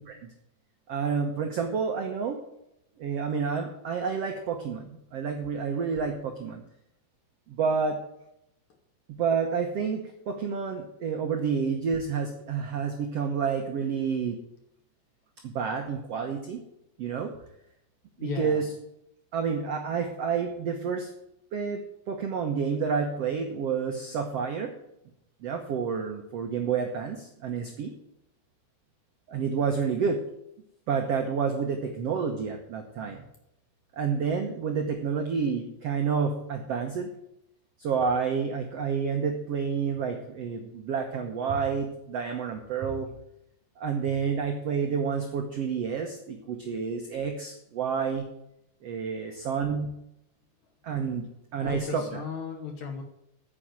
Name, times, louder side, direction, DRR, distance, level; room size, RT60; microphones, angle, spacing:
voice 1, 0.9-2.4 3.0-6.6 7.5-8.0 9.1-14.4 15.4-16.6 17.0-17.3 18.2-18.7 19.3-21.1 21.5-21.8 22.1-24.7 25.4-27.9 29.3-30.2 30.9-33.2 34.0-37.1 37.8-43.1 43.8-48.2 48.8-49.9 50.8-51.2 51.5-52.2, right 6 dB, 75° right, 4 dB, 1.4 m, -29 dB
voice 2, 18.2-18.6 51.6-53.0, left 5 dB, 65° left, 4 dB, 2.0 m, -35 dB
9.5 x 7.8 x 8.9 m, 0.80 s
omnidirectional pair, 4.5 m